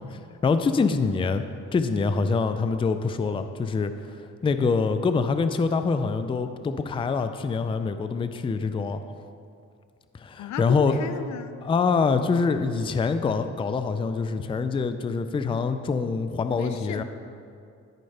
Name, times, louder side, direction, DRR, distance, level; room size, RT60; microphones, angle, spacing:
voice 1, 0.4-1.4 1.7-3.9 4.4-9.0 10.1-11.0 11.6-17.0, left 4 dB, 20° left, 10 dB, 0.4 m, -25 dB
voice 2, 10.4-11.6 16.5-17.0, left 8 dB, 70° left, 11 dB, 0.5 m, -35 dB
13.0 x 5.3 x 3.3 m, 2.4 s
cardioid pair, 90°, 30 cm